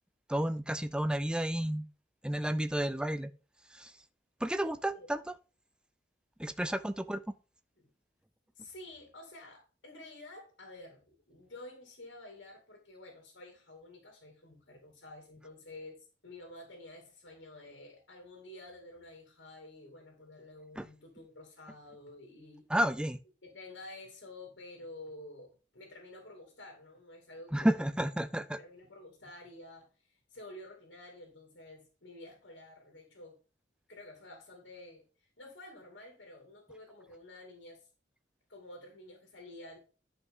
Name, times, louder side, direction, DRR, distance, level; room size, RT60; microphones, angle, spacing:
voice 1, 0.3-1.9 2.2-3.3 3.7-3.9 4.4-5.2 6.4-7.2 20.8-20.9 22.7-23.2 27.5-28.6, right 1 dB, 5° right, 0.4 m, -31 dB
voice 2, 8.5-22.7 23.4-27.8 28.6-33.4 33.9-37.9 38.5-39.8, left 2 dB, 75° left, 2.4 m, -50 dB
10.5 x 5.4 x 3.7 m
head